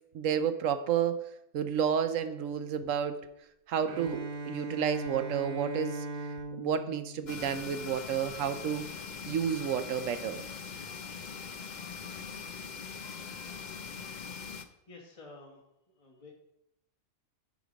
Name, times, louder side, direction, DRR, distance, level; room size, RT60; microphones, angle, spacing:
voice 1, 0.1-1.3 1.5-3.2 3.7-6.1 6.6-8.9 9.3-10.4, right 8 dB, 75° right, 10 dB, 1.0 m, -31 dB
Bowed string instrument, 3.8-7.9, right 2 dB, 50° right, 0.9 m, -39 dB
sound 1, 7.3-14.7, left 5 dB, 50° left, 0.5 m, -42 dB
voice 2, 14.9-15.6 16.0-16.3, left 3 dB, 25° left, -2 dB, 1.4 m, -50 dB
10.5 x 4.8 x 5.1 m, 0.81 s
omnidirectional pair, 1.4 m